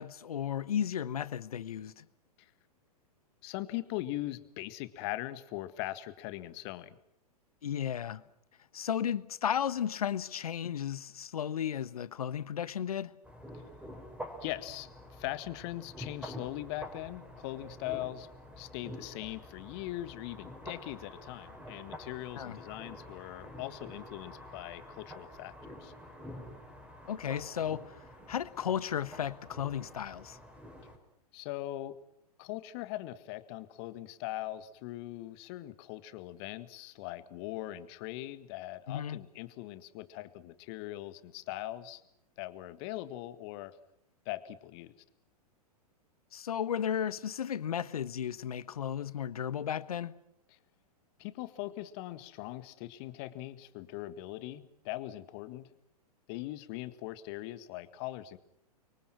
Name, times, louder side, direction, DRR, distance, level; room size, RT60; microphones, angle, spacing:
voice 1, 0.0-2.0 7.6-8.2 8.7-13.1 22.4-22.6 27.0-27.9 28.3-30.4 38.9-39.2 46.3-50.1, left 9 dB, 65° left, 1.3 m, -34 dB
voice 2, 3.4-7.0 14.4-18.3 18.6-25.9 31.3-32.0 32.4-42.0 42.4-43.8 44.3-44.9 51.2-55.7 56.3-58.4, left 16 dB, 40° left, 1.8 m, -40 dB
sound 1, 13.2-31.0, equal, 5° right, 5.8 m, -48 dB
30.0 x 24.5 x 6.0 m
figure-of-eight pair, 105°, 20 cm